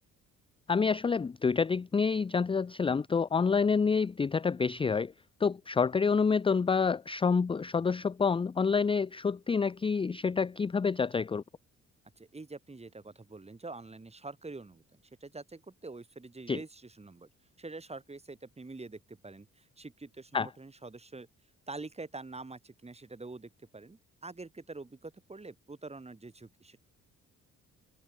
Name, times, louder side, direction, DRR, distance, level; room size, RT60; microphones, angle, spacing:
voice 1, 0.7-5.1 5.4-11.4 16.5-16.6 20.3-20.5, left 5 dB, 20° left, 0.5 m, -28 dB
voice 2, 12.2-17.3 17.6-21.3 21.7-26.8, right 3 dB, 20° right, 7.1 m, -46 dB
cardioid pair, 90°, 30 cm